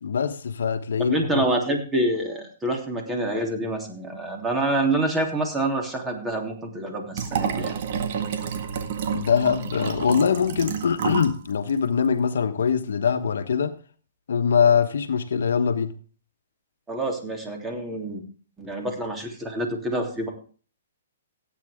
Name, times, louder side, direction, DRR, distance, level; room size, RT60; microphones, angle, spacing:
voice 1, 0.0-1.4 9.1-13.8 14.3-16.0, left 6 dB, 75° left, 1.3 m, -23 dB
voice 2, 1.0-7.8 16.9-18.2 18.6-20.3, right 1 dB, 10° right, 3.2 m, -27 dB
Liquid, 7.1-11.4 11.7-11.8, right 7 dB, 55° right, 1.8 m, -29 dB
16.5 x 9.1 x 3.7 m
hypercardioid pair, 140°, 0 cm